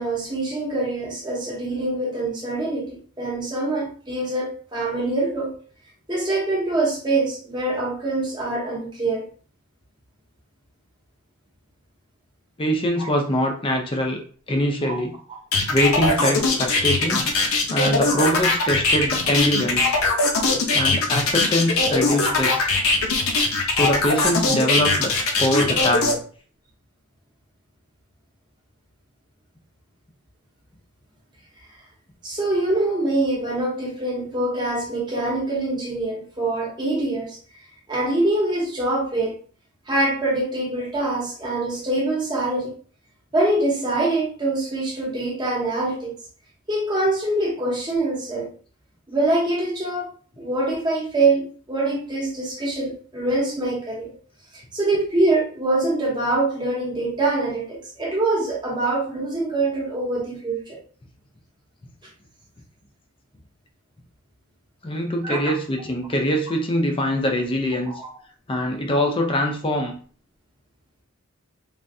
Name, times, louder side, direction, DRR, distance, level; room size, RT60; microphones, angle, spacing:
voice 1, 0.0-5.6 6.1-9.3 13.0-13.1 14.8-15.0 32.2-37.4 37.9-39.4 39.9-42.7 43.3-46.1 46.7-48.5 49.1-54.1 54.5-60.8 65.2-65.4 67.9-68.1, right 2 dB, 20° right, -2 dB, 0.8 m, -24 dB
voice 2, 12.6-14.2 14.5-15.1 15.7-17.3 17.7-20.0 20.7-22.7 23.7-25.1 25.4-26.2 64.8-67.9 68.5-69.9, equal, 25° left, 2 dB, 0.5 m, -23 dB
sound 1, 15.5-26.1, left 3 dB, 75° left, 0.7 m, -20 dB
3.4 x 2.5 x 2.6 m, 0.43 s
head